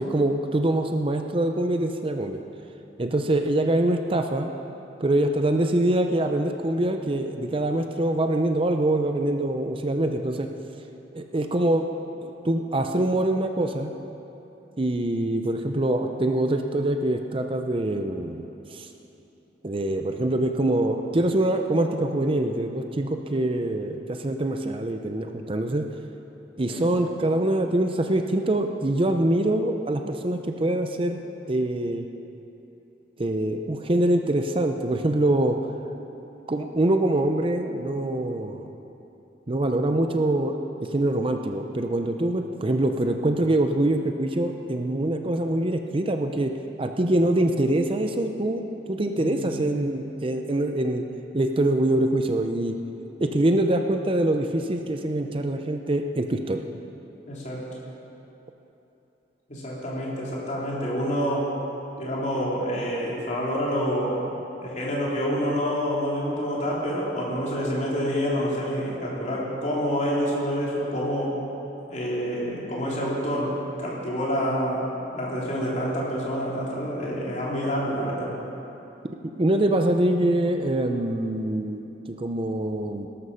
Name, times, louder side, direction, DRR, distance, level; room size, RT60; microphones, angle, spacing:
voice 1, 0.0-2.4 3.0-4.5 5.0-10.5 11.1-11.9 12.2-13.9 14.8-18.9 19.6-25.9 26.6-31.2 31.5-32.1 33.2-35.6 36.5-38.7 39.5-40.6 40.9-46.5 46.8-51.1 51.3-52.8 53.2-56.6 79.4-83.1, right 1 dB, 30° right, 5 dB, 0.6 m, -24 dB
voice 2, 48.9-49.7 57.3-57.6 59.5-61.5 62.0-64.2 64.6-71.3 71.9-73.5 73.8-78.3, equal, 40° left, -5 dB, 3.6 m, -27 dB
18.0 x 12.5 x 5.7 m, 2.9 s
head